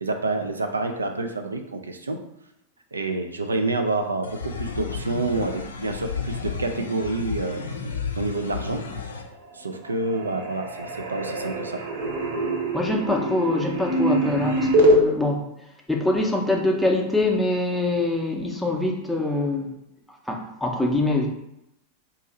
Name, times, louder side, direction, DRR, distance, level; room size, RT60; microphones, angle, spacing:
voice 1, 0.0-2.2 2.9-7.8 8.2-8.8 9.5-11.8, right 2 dB, 75° right, 5 dB, 0.3 m, -28 dB
sound 1, 4.2-9.2, left 5 dB, 70° left, 0.4 m, -32 dB
sound 2, 9.0-9.6 9.8-15.0, right 1 dB, 55° right, 0.7 m, -24 dB
voice 2, 12.7-15.5 15.9-19.7 20.3-21.3, left 2 dB, ahead, -1 dB, 0.6 m, -24 dB
2.7 x 2.5 x 4.0 m, 0.82 s
figure-of-eight pair, 90°, 0 cm